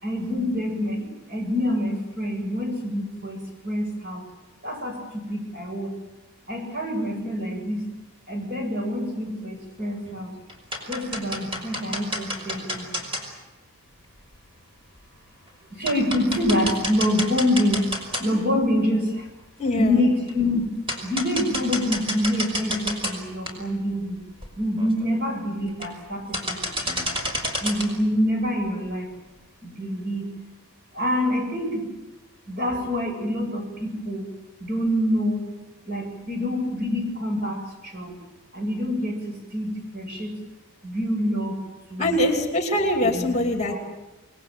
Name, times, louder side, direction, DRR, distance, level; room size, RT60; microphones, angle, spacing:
voice 1, 0.0-3.4 3.6-4.2 4.6-5.9 6.5-7.8 8.3-10.3 10.9-12.9 15.7-17.9 18.2-19.3 19.8-20.7 21.0-24.2 24.6-27.1 27.6-29.1 29.6-30.3 30.9-31.8 32.5-34.2 34.6-35.4 35.9-38.1 38.5-40.3 40.8-41.6 41.9-42.2 43.0-43.4 43.7-43.8, left 1 dB, 45° right, 4 dB, 7.3 m, -26 dB
sound 1, 9.8-10.2 10.5-13.2 14.3-14.4 15.0-15.1 15.5-15.6 15.9-18.5 19.0-19.1 20.3-20.4 20.9-23.2 23.5-23.6 24.1-24.2 24.4-24.5 24.8-25.1 25.7-26.1 26.3-27.9, left 1 dB, 25° right, 5.6 m, -30 dB
voice 2, 19.6-20.0 42.0-43.7, left 1 dB, 30° left, 3 dB, 2.9 m, -23 dB
28.5 x 21.0 x 7.7 m, 1.1 s
head